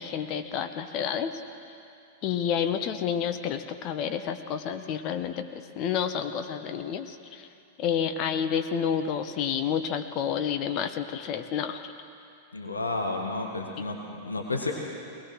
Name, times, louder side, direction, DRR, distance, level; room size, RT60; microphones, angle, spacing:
voice 1, 0.0-1.3 2.2-7.5 7.8-11.8, left 8 dB, 35° left, 8 dB, 1.1 m, -29 dB
voice 2, 12.5-14.7, left 2 dB, 80° left, 1 dB, 1.9 m, -31 dB
21.5 x 20.0 x 6.3 m, 2.5 s
figure-of-eight pair, 95°, 0 cm